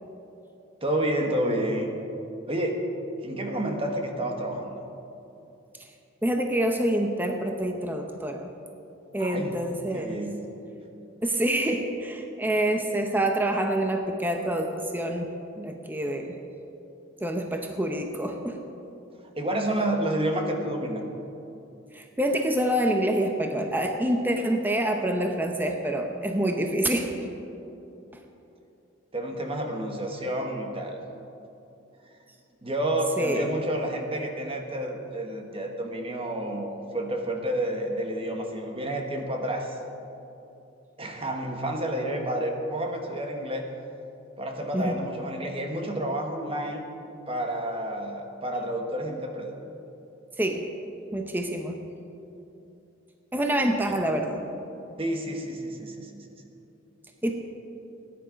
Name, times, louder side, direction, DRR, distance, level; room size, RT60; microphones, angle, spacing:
voice 1, 0.8-1.9 2.5-2.8 3.2-4.8 9.2-9.6 9.9-10.5 19.3-21.0 29.1-31.0 32.0-32.1 32.6-39.8 41.0-43.7 44.4-46.8 47.3-49.5 53.6-53.8 55.0-56.4, right 1 dB, 30° right, 3 dB, 1.4 m, -30 dB
voice 2, 6.2-8.5 9.1-10.2 11.2-15.3 15.6-16.4 17.2-18.6 21.9-27.1 33.2-33.5 44.7-45.0 50.4-50.6 51.1-51.8 53.3-54.4 57.2-57.3, right 1 dB, 10° right, 4 dB, 0.8 m, -27 dB
17.5 x 10.5 x 5.2 m, 2.8 s
head